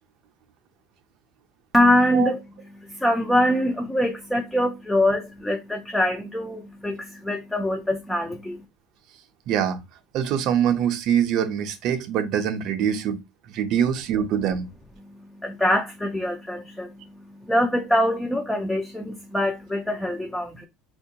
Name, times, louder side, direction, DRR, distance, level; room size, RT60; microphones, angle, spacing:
voice 1, 1.7-2.4 3.0-8.6 15.4-16.9 17.5-20.7, left 1 dB, 5° left, 0.3 m, -23 dB
voice 2, 9.5-9.8 10.1-13.2 13.5-14.7, right 9 dB, 45° right, 0.5 m, -24 dB
4.3 x 2.3 x 2.7 m
cardioid pair, 160°, 0 cm